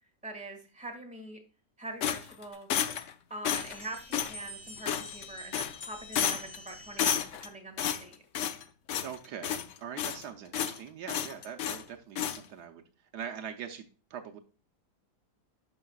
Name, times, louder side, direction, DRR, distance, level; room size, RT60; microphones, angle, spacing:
voice 1, 0.2-1.4 1.8-2.7 3.3-8.2, right 2 dB, 5° right, 2 dB, 1.6 m, -43 dB
sound 1, 2.0-3.1 3.4-3.8 4.1-4.4 4.9-5.3 5.5-5.9 6.2-6.6 7.0-7.5 7.8-8.6 8.9-9.2 9.4-10.2 10.5-10.8 11.1-11.8 12.2-12.4, left 9 dB, 65° left, 0.7 m, -31 dB
sound 2, 3.5-7.5, left 2 dB, 35° left, 1.6 m, -45 dB
voice 2, 9.0-12.8 13.1-14.4, right 8 dB, 75° right, 5 dB, 1.2 m, -42 dB
12.0 x 5.3 x 2.3 m, 0.35 s
omnidirectional pair, 1.8 m